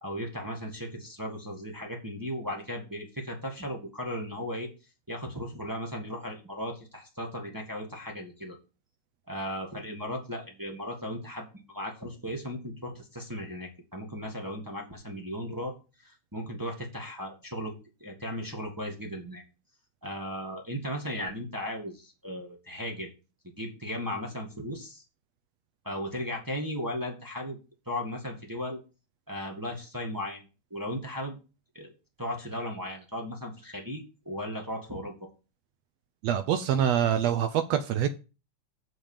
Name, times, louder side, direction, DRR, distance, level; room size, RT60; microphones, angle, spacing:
voice 1, 0.0-4.7 5.1-8.6 9.3-15.7 16.0-19.4 20.0-23.1 23.6-25.0 25.8-27.6 27.8-28.8 29.3-30.4 30.7-31.4 31.7-31.9 32.2-35.1, equal, 15° right, 0 dB, 0.8 m, -36 dB
voice 2, 36.2-38.1, right 9 dB, 80° right, 10 dB, 1.5 m, -25 dB
7.4 x 5.0 x 7.2 m, 0.31 s
omnidirectional pair, 3.6 m